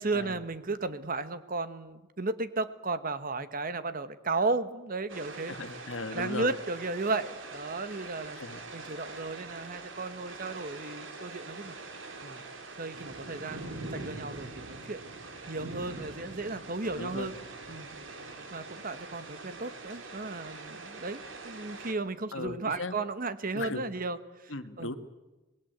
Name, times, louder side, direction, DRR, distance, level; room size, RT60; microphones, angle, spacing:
voice 1, 0.0-5.5 6.1-8.4 8.7-11.8 12.2-12.4 12.8-15.0 15.5-17.3 17.7-17.9 18.5-24.9, right 3 dB, 50° right, 12 dB, 1.3 m, -34 dB
sound 1, 5.1-21.9, right 3 dB, 85° right, 3.2 m, -43 dB
voice 2, 5.5-6.6 8.3-8.6 16.9-17.3 22.3-22.9 23.6-23.8 24.5-24.9, left 2 dB, 90° left, 9 dB, 1.7 m, -37 dB
26.0 x 21.0 x 8.0 m, 1.1 s
head